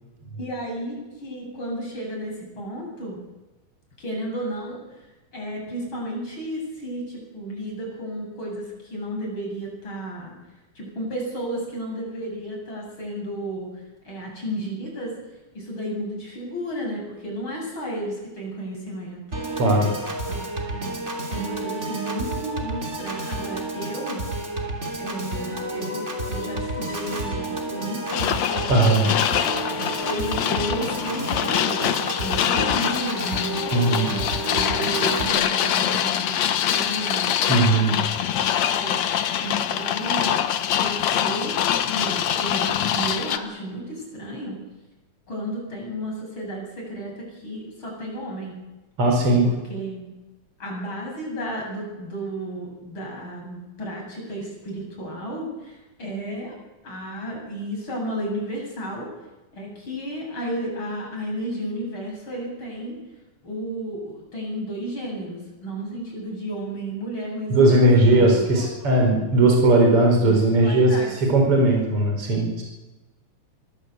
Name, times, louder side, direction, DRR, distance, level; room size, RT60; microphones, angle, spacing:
voice 1, 0.4-3.2 4.0-4.8 5.3-10.3 10.8-13.7 14.0-15.1 15.5-19.4 20.0-21.0 21.3-24.2 24.9-28.7 29.2-33.5 34.0-34.3 34.5-36.4 36.7-40.4 40.8-44.6 45.3-48.6 49.4-50.1 50.6-56.5 56.8-59.1 59.5-63.0 63.4-67.5 68.0-68.7 70.2-71.1, right 1 dB, 40° left, -1 dB, 9.0 m, -33 dB
Piano / Organ, 19.3-35.3, right 2 dB, 20° right, 3.3 m, -30 dB
voice 2, 19.6-19.9 28.7-29.1 33.7-34.1 37.5-37.9 49.0-49.5 67.5-71.0 71.3-72.6, right 2 dB, 45° right, 1 dB, 5.8 m, -18 dB
sound 1, 28.1-43.4, left 10 dB, 65° left, 2.2 m, -24 dB
23.0 x 18.5 x 8.4 m, 1.1 s
omnidirectional pair, 3.6 m